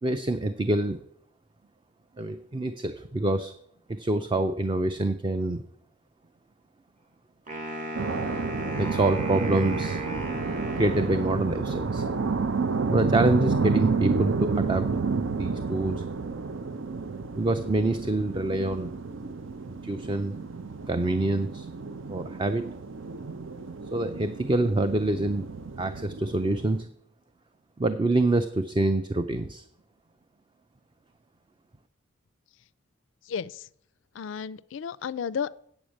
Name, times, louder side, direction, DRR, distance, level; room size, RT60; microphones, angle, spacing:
voice 1, 0.0-1.0 2.2-3.5 3.9-5.6 8.8-10.0 10.8-12.0 12.9-14.9 15.4-16.0 17.4-18.9 19.7-20.4 20.9-21.7 22.1-22.6 23.9-25.4 25.8-26.9 27.8-29.6, right 2 dB, 25° right, 10 dB, 0.5 m, -26 dB
Wind instrument woodwind instrument, 7.5-11.7, right 2 dB, 40° right, 1.9 m, -36 dB
sound 1, 8.0-26.8, right 4 dB, 75° right, 0.6 m, -30 dB
voice 2, 33.3-33.7 34.1-35.5, left 7 dB, 65° left, 16 dB, 0.4 m, -33 dB
8.7 x 7.1 x 6.3 m, 0.68 s
head